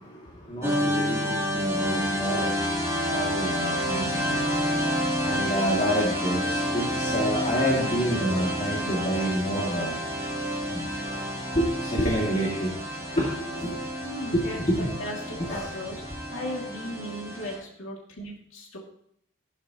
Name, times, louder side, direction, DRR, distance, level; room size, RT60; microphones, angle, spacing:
voice 1, 0.5-2.5 3.1-4.4 5.2-9.9 10.7-10.9 11.6-12.7 13.2-13.3 14.3-14.6 15.5-15.6, equal, 30° left, -3 dB, 2.5 m, -28 dB
sound 1, 0.6-17.5, equal, 15° right, 4.1 m, -29 dB
voice 2, 11.1-11.6 14.0-16.0 16.3-18.8, left 1 dB, 60° left, -2 dB, 2.5 m, -37 dB
14.5 x 12.5 x 3.0 m, 0.70 s
head